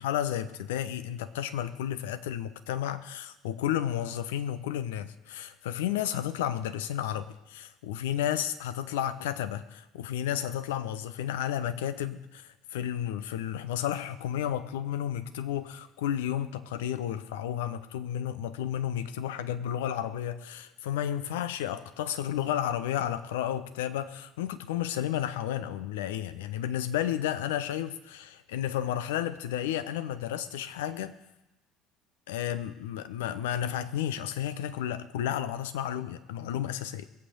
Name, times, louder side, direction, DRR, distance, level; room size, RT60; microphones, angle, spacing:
voice 1, 0.0-31.2 32.3-37.1, left 10 dB, 65° left, 12 dB, 0.7 m, -32 dB
21.0 x 8.1 x 5.3 m, 0.95 s
figure-of-eight pair, 60°, 0 cm